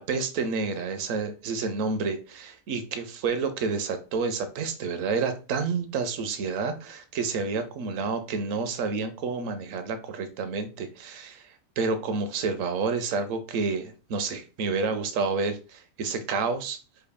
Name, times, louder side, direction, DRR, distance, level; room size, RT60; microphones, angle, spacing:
voice 1, 0.0-11.4 11.8-16.8, right 4 dB, 70° right, 9 dB, 1.0 m, -29 dB
5.3 x 3.2 x 2.2 m, 0.34 s
omnidirectional pair, 1.4 m